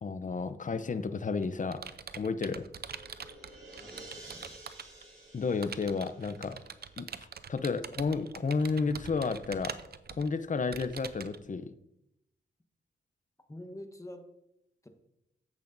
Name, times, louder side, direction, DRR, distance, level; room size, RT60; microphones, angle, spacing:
voice 1, 0.0-1.8 2.2-2.7 5.3-6.6 7.0-9.7 10.1-11.7, left 4 dB, 40° left, 11 dB, 0.6 m, -32 dB
Computer keyboard, 1.0-5.0 5.6-11.4, right 6 dB, 55° right, 0.5 m, -44 dB
sound 1, 2.7-7.1, right 1 dB, 90° right, 2.4 m, -52 dB
voice 2, 3.7-4.6 13.5-14.3 14.8-14.9, left 1 dB, 15° left, 6 dB, 1.1 m, -47 dB
Sigh, 8.7-9.2, equal, 60° left, 2.8 m, -46 dB
10.5 x 8.2 x 2.7 m, 0.83 s
cardioid pair, 65°, 20 cm